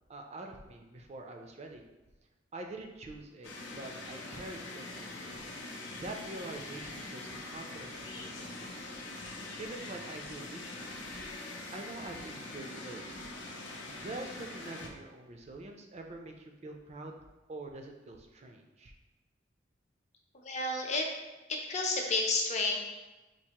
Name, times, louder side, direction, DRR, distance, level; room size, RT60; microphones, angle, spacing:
voice 1, 0.1-1.8 2.5-3.5 3.7-5.4 5.9-8.1 8.4-8.9 9.3-11.0 11.7-13.2 14.0-17.2 17.5-18.9, right 2 dB, 35° right, 3 dB, 0.4 m, -45 dB
sound 1, 3.4-14.9, left 2 dB, 85° left, 0.6 m, -43 dB
voice 2, 20.5-21.1 21.5-22.8, left 3 dB, 40° left, 0 dB, 0.6 m, -30 dB
4.6 x 2.5 x 2.8 m, 1.1 s
head